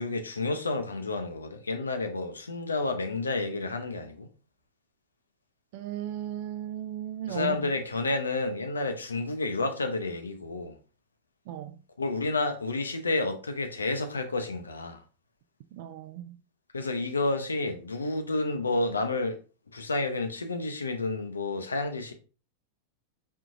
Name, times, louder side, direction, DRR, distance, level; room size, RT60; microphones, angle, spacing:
voice 1, 0.0-4.3 7.3-10.8 12.0-15.0 16.7-19.4 19.7-22.1, left 2 dB, 75° left, 0.6 m, -30 dB
voice 2, 5.7-7.6 11.5-11.8 15.7-16.4, right 11 dB, 50° right, 0.4 m, -36 dB
4.5 x 3.5 x 2.5 m
figure-of-eight pair, 90°, 0 cm